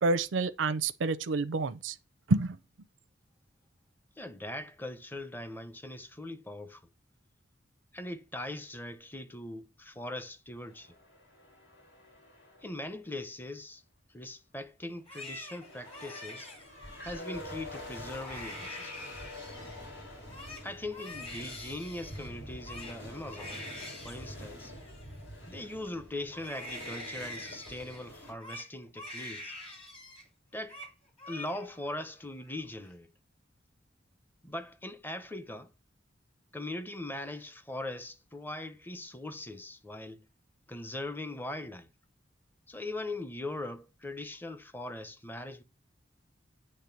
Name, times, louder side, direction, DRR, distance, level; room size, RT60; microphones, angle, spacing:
voice 1, 0.0-2.0 2.3-2.6, right 3 dB, 85° right, 0.5 m, -28 dB
voice 2, 4.2-6.8 7.9-10.9 12.6-13.8 14.1-16.5 17.0-18.9 20.6-23.6 24.0-24.7 25.5-29.5 30.5-30.8 31.3-33.1 34.4-35.7 36.5-40.3 40.7-41.9 42.7-45.6, left 1 dB, 10° left, 0.7 m, -40 dB
sound 1, 10.6-12.9 15.5-28.3, left 1 dB, 70° left, 4.0 m, -46 dB
Crying sobbing, 14.9-17.2 17.7-17.9 18.1-19.8 20.1-25.9 26.3-30.3 30.5-30.9 31.2-31.9 32.3-32.9, left 1 dB, 30° left, 2.0 m, -46 dB
8.7 x 3.3 x 5.8 m
head